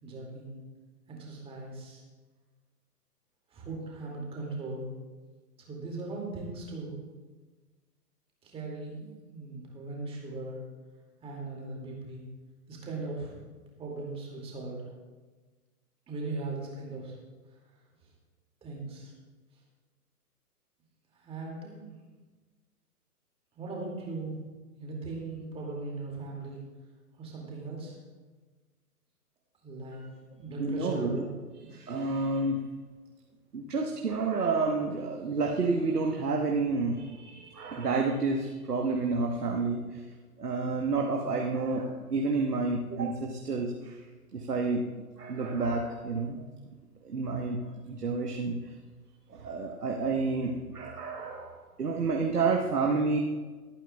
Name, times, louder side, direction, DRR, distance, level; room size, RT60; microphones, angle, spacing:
voice 1, 0.0-0.6 1.1-2.0 3.5-4.9 5.6-7.0 8.4-10.6 11.2-12.3 12.7-13.4 13.8-14.9 16.1-17.2 17.5-17.6 18.6-19.1 21.1-22.0 23.5-24.3 24.8-26.6 27.1-28.0 29.6-30.0 30.4-31.3, right 3 dB, 10° right, -2 dB, 2.3 m, -39 dB
voice 2, 30.6-31.2 31.7-32.6 33.5-40.0 40.4-44.0 44.3-44.8 45.2-46.4 47.0-48.6 49.3-53.2, right 3 dB, 75° right, 1 dB, 1.3 m, -30 dB
22.5 x 9.1 x 2.3 m, 1.3 s
figure-of-eight pair, 125°, 46 cm